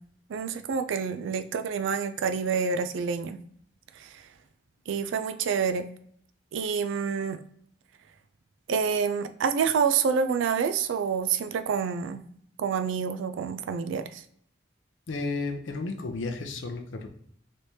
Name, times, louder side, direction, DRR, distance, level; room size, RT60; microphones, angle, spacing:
voice 1, 0.3-3.4 4.0-4.2 4.9-5.9 6.5-7.4 8.7-12.2 12.6-14.2, right 6 dB, 80° right, 9 dB, 0.3 m, -27 dB
voice 2, 15.1-17.1, left 3 dB, 80° left, 4 dB, 0.5 m, -33 dB
3.3 x 3.1 x 2.7 m, 0.67 s
head